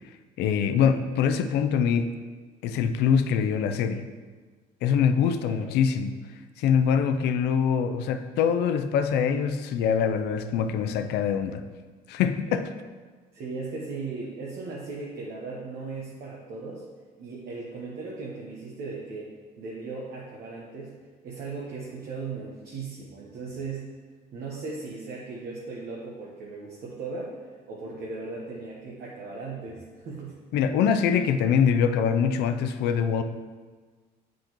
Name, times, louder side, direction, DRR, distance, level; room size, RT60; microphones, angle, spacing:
voice 1, 0.4-2.1 2.6-4.0 4.8-6.1 6.6-11.6 12.1-12.7 30.5-33.2, left 7 dB, 80° left, 9 dB, 0.5 m, -24 dB
voice 2, 5.4-5.7 13.3-16.8 17.2-24.0 24.3-30.4, right 3 dB, 65° right, -4 dB, 1.1 m, -37 dB
7.9 x 5.0 x 3.0 m, 1.4 s
cardioid pair, 110°, 17 cm